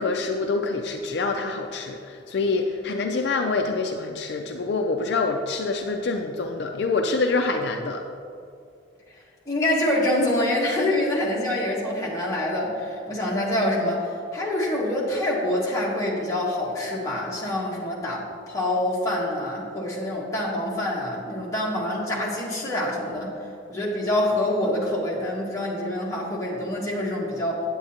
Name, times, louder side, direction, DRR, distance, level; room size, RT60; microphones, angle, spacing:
voice 1, 0.0-8.0, left 3 dB, 60° left, 4 dB, 0.4 m, -26 dB
voice 2, 9.5-23.3 23.7-27.6, left 1 dB, 15° left, -6 dB, 1.4 m, -26 dB
8.7 x 8.5 x 2.8 m, 2.5 s
head